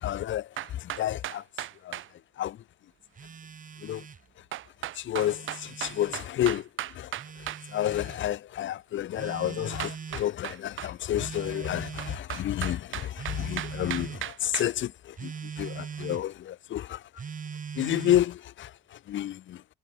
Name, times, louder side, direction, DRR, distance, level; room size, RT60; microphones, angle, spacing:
voice 1, 0.0-1.4 1.8-2.0 2.4-2.6 3.8-4.0 5.0-6.7 6.9-7.1 7.7-17.0 17.8-18.7 19.1-19.6, left 12 dB, 70° left, 1.8 m, -30 dB
sound 1, 0.6-2.1 4.5-7.6 9.8-10.9 12.0-14.7, right 13 dB, 80° right, 5.3 m, -36 dB
Telephone, 3.1-4.2 5.0-6.2 7.1-8.2 9.2-10.3 11.2-12.3 13.1-14.2 15.2-16.3 17.2-18.3, right 6 dB, 40° right, 2.5 m, -40 dB
cardioid pair, 90°, 20 cm